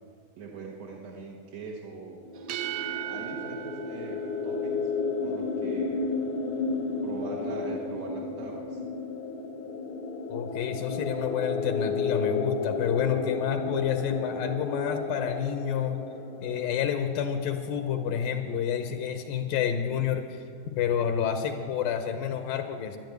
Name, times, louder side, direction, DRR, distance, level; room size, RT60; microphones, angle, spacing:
voice 1, 0.4-2.3 3.1-4.9 5.2-6.0 7.0-8.8, right 3 dB, 60° right, -3 dB, 2.0 m, -41 dB
sound 1, 2.2-17.9, left 4 dB, 60° left, 1.5 m, -33 dB
sound 2, 2.4-5.2, right 13 dB, 80° right, 1.7 m, -37 dB
voice 2, 10.3-16.1 16.4-20.4 20.7-23.0, left 8 dB, 75° left, 7 dB, 2.4 m, -29 dB
12.0 x 11.0 x 9.2 m, 2.4 s
omnidirectional pair, 4.2 m